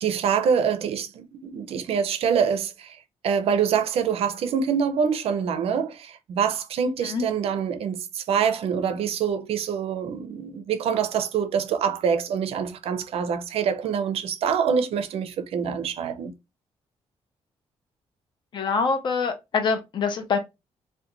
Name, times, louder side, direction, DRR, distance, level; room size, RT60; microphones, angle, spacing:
voice 1, 0.0-3.0 3.2-16.3, right 7 dB, 65° right, 0.4 m, -25 dB
voice 2, 18.5-20.4, left 5 dB, 45° left, 0.6 m, -25 dB
2.4 x 2.1 x 2.8 m
cardioid pair, 140°, 11 cm